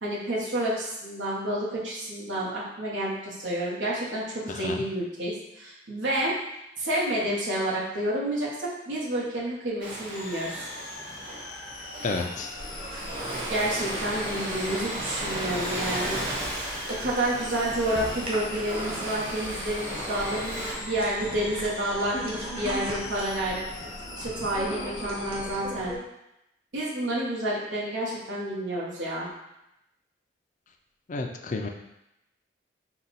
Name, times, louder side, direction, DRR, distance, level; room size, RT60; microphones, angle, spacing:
voice 1, 0.0-6.3 6.8-10.7 13.5-16.2 16.9-23.6 24.2-25.9 26.7-29.3, right 1 dB, 85° right, -6 dB, 1.2 m, -29 dB
voice 2, 4.5-4.8 12.0-12.5 31.1-31.7, left 3 dB, 40° left, 3 dB, 0.4 m, -31 dB
Ocean, 9.8-20.7, right 1 dB, 45° right, 1.5 m, -35 dB
sound 1, 10.1-25.6, left 3 dB, 85° left, 0.8 m, -42 dB
sound 2, 12.5-26.0, equal, 30° right, 0.8 m, -38 dB
5.0 x 2.3 x 4.1 m, 0.87 s
head